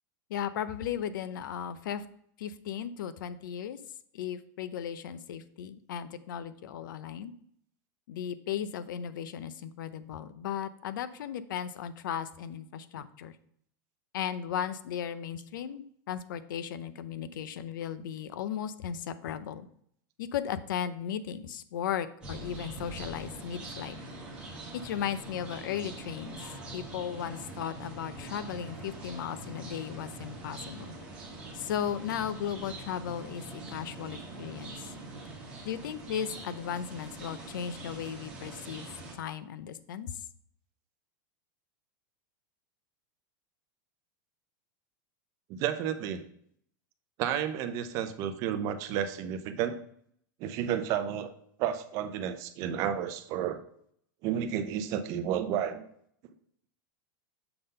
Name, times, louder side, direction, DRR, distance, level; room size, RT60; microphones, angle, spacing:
voice 1, 0.3-2.0 2.4-3.8 4.1-7.3 8.1-13.3 14.1-19.7 20.2-24.0 24.7-26.5 26.7-30.9 31.5-34.9 35.6-38.9 39.2-40.1, left 9 dB, 75° left, 14 dB, 0.6 m, -36 dB
sound 1, 22.2-39.2, right 2 dB, 10° right, 1.3 m, -44 dB
voice 2, 45.5-46.2 47.2-49.8 50.4-51.3 51.6-53.6 54.2-55.9, right 9 dB, 30° right, 9 dB, 0.5 m, -31 dB
6.8 x 3.9 x 5.3 m, 0.66 s
supercardioid pair, 175°, 11 cm